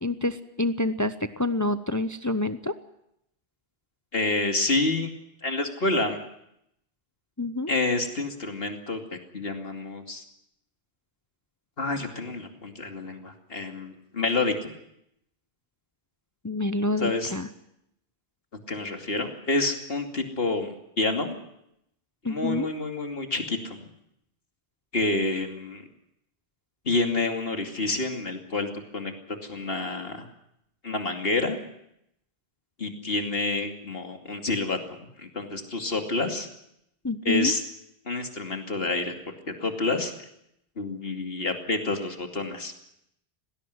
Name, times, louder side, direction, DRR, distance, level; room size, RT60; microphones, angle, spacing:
voice 1, 0.0-2.8 7.4-7.7 16.4-17.5 22.2-22.7 37.0-37.5, left 2 dB, 20° left, 11 dB, 0.7 m, -27 dB
voice 2, 4.1-5.1 5.4-6.2 7.7-10.2 11.8-14.7 17.0-17.3 18.7-21.4 22.2-23.9 24.9-25.8 26.8-30.3 30.8-31.6 32.8-36.5 37.2-37.6 38.0-39.1 39.5-40.3 40.8-42.7, left 2 dB, 60° left, 4 dB, 2.8 m, -28 dB
19.5 x 17.5 x 9.5 m, 0.79 s
omnidirectional pair, 1.1 m